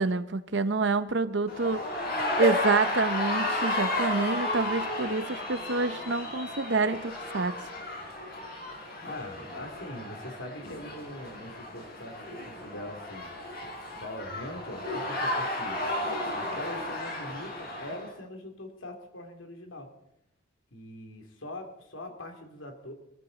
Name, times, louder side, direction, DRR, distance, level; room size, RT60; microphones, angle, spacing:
voice 1, 0.0-1.8 2.4-7.5, right 3 dB, 60° right, 12 dB, 0.8 m, -27 dB
sound 1, 1.5-18.1, left 1 dB, 50° left, 4.9 m, -33 dB
sound 2, 2.4-6.1 6.7-6.8 7.0-7.1, right 1 dB, 15° left, 4.7 m, -37 dB
voice 2, 9.0-13.3 14.0-15.8 16.3-19.9 20.7-22.9, left 1 dB, 75° left, 4 dB, 2.8 m, -42 dB
23.5 x 14.0 x 4.0 m, 0.81 s
head